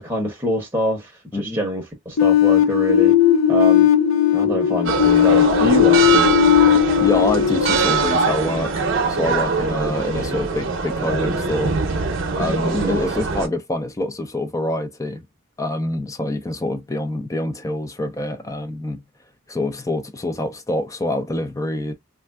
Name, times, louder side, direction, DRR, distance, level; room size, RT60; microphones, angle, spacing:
voice 1, 0.0-3.1 3.5-3.9 4.3-6.3 12.7-13.0, equal, 10° right, 0.8 m, -25 dB
sound 1, 2.2-8.9, left 10 dB, 85° left, 0.5 m, -17 dB
sound 2, 4.9-13.5, right 4 dB, 70° right, 0.7 m, -22 dB
voice 2, 7.0-8.7 9.1-11.8 12.4-15.2 15.6-19.0 19.5-21.9, left 1 dB, 15° left, 0.4 m, -25 dB
3.3 x 2.4 x 2.3 m
head